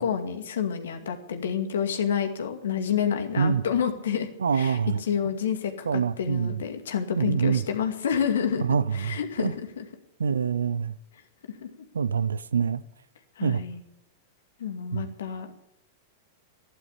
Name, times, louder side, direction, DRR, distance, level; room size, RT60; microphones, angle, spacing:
voice 1, 0.0-9.8 11.6-11.7 13.4-13.8 14.6-15.5, left 7 dB, 80° left, 2.2 m, -29 dB
voice 2, 4.4-5.0 5.9-6.6 7.2-7.6 8.6-9.5 10.2-10.9 11.9-12.8 13.4-13.6 14.9-15.1, right 6 dB, 85° right, 0.7 m, -25 dB
12.5 x 11.5 x 8.4 m
hypercardioid pair, 105°, 0 cm